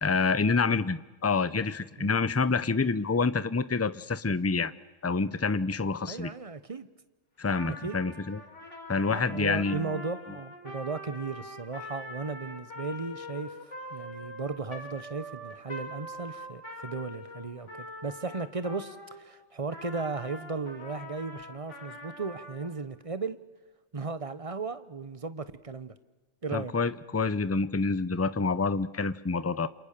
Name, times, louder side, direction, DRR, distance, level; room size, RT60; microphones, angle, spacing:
voice 1, 0.0-4.7 5.0-6.3 7.4-8.4 8.9-9.9 26.5-29.7, left 4 dB, 15° left, 16 dB, 0.6 m, -27 dB
voice 2, 6.1-6.9 7.8-8.0 9.1-13.6 13.9-23.4 23.9-26.0 26.4-26.7, right 4 dB, 25° right, 13 dB, 1.2 m, -36 dB
Trumpet, 7.5-19.2 19.7-22.7, left 1 dB, 65° left, 5.4 m, -43 dB
28.0 x 28.0 x 6.8 m, 1.3 s
omnidirectional pair, 1.3 m